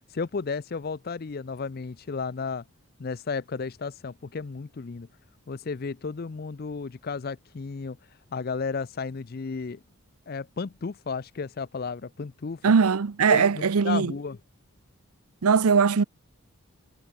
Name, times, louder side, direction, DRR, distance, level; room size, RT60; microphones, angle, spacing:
voice 1, 0.1-2.6 3.0-5.1 5.5-8.0 8.3-9.8 10.3-12.6 13.3-14.4, left 4 dB, 45° left, 0.5 m, -33 dB
voice 2, 12.6-14.1 15.4-16.0, right 5 dB, 85° right, 0.6 m, -20 dB
head